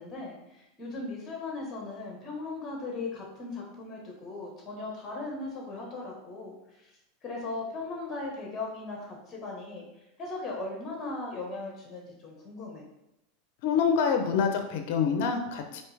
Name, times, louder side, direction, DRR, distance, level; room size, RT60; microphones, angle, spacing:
voice 1, 0.0-6.9 7.2-9.8 10.2-12.8, left 3 dB, 30° left, 0 dB, 1.3 m, -38 dB
voice 2, 13.6-15.8, left 6 dB, 65° left, 5 dB, 0.6 m, -26 dB
4.4 x 2.7 x 3.3 m, 0.87 s
hypercardioid pair, 105°, 0 cm